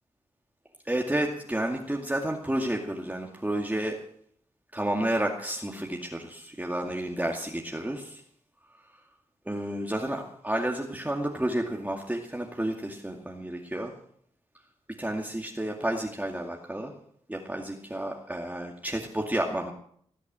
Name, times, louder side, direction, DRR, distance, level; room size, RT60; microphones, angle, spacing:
voice 1, 0.9-4.0 4.7-8.2 9.5-13.9 15.0-16.9 17.3-19.7, right 1 dB, 15° right, 1 dB, 2.2 m, -31 dB
19.5 x 8.3 x 7.6 m, 0.65 s
cardioid pair, 60°, 13 cm